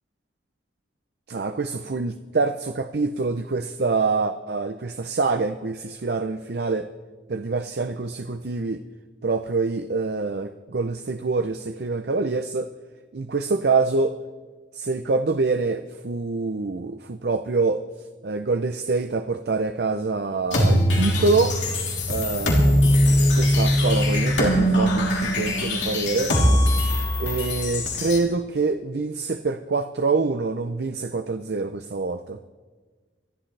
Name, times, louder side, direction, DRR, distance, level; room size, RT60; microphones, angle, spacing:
voice 1, 1.3-6.9 7.3-8.8 9.2-12.7 13.1-14.1 14.7-17.8 18.2-21.6 22.1-22.6 23.3-26.9 27.2-32.4, right 3 dB, 60° right, 9 dB, 0.5 m, -25 dB
sound 1, 20.5-28.2, equal, 90° left, 3.2 m, -21 dB
26.0 x 11.5 x 3.3 m, 1.4 s
head